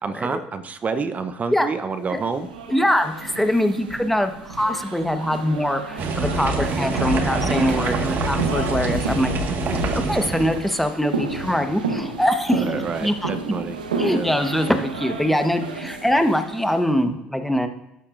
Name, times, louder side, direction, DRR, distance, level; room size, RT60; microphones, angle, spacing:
voice 1, 0.0-2.5 12.5-13.8 14.0-14.3, right 5 dB, 35° right, 9 dB, 0.8 m, -28 dB
sound 1, 2.2-16.9, right 4 dB, 85° right, 1.0 m, -32 dB
voice 2, 2.7-9.3 10.1-12.7 13.0-13.3 14.0-17.7, equal, 5° left, 6 dB, 1.3 m, -23 dB
sound 2, 6.0-10.6, right 3 dB, 50° right, 1.8 m, -25 dB
13.0 x 8.5 x 2.6 m, 0.87 s
hypercardioid pair, 60°, 4 cm